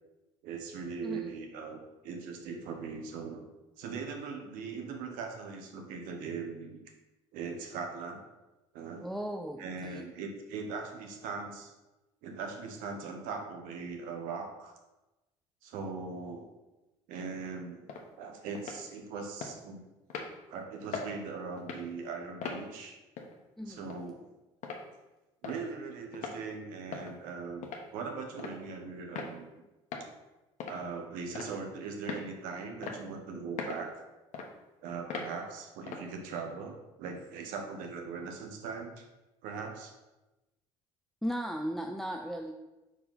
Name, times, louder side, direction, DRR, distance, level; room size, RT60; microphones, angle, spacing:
voice 1, 0.4-3.4 3.8-6.8 7.3-8.2 8.7-9.1 9.6-11.7 12.2-14.8 15.6-16.5 17.1-19.8 20.5-22.9 23.7-24.2 25.4-29.5 30.7-34.0 34.8-39.0 39.4-39.9, right 5 dB, 65° right, 4 dB, 1.2 m, -40 dB
voice 2, 1.0-1.4 9.0-10.1 23.6-23.9 41.2-42.5, equal, ahead, 2 dB, 0.5 m, -36 dB
sound 1, 17.9-18.0 18.5-18.8 19.4-19.5 20.1-20.3 20.9-21.1 21.6-21.8 22.4-22.6 23.2-23.3 23.9-24.0 24.6-24.8 25.4-25.6 26.1-26.4 26.9-27.1 27.6-27.9 28.4-28.6 29.2-29.3 29.9-30.1 30.6-30.8 31.3-31.6 32.1-32.3 32.8-33.0 33.6-33.8 34.3-34.5 35.1-35.3 35.9-36.1, left 5 dB, 55° left, 1.1 m, -39 dB
4.9 x 4.6 x 5.6 m, 1.0 s
hypercardioid pair, 60°, 15 cm